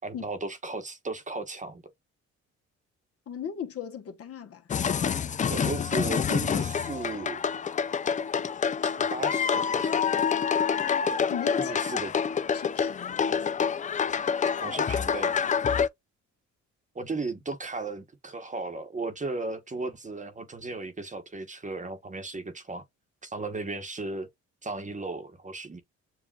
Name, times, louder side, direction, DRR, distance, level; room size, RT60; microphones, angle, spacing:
voice 1, 0.0-1.8 5.5-7.4 8.8-10.0 11.6-12.1 14.6-15.4 16.9-22.8 23.2-24.3 24.6-25.8, right 3 dB, 25° right, 1.0 m, -35 dB
voice 2, 3.3-4.7 11.3-11.8 12.5-13.5, left 8 dB, 50° left, 1.1 m, -37 dB
sound 1, 4.7-15.9, left 7 dB, 25° left, 0.3 m, -27 dB
7.4 x 2.5 x 2.3 m
cardioid pair, 90°, 30 cm